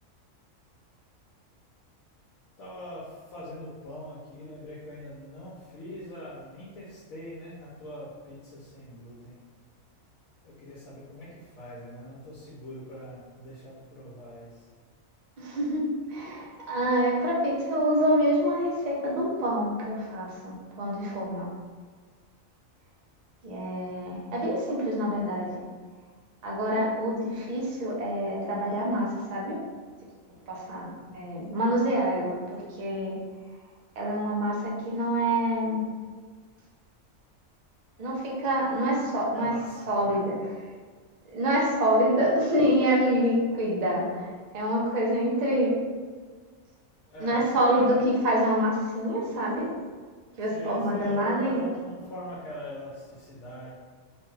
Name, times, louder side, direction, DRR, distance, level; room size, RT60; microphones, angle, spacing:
voice 1, 2.6-9.4 10.4-14.7 39.3-40.3 47.1-47.9 50.5-53.7, left 1 dB, 80° left, -7 dB, 1.1 m, -42 dB
voice 2, 15.4-21.5 23.4-25.6 26.4-29.6 30.5-33.1 34.0-35.8 38.0-39.6 39.9-40.4 41.3-45.8 47.2-49.7 50.4-51.7, equal, 50° right, -4 dB, 0.5 m, -26 dB
3.0 x 2.2 x 3.2 m, 1.5 s
omnidirectional pair, 1.4 m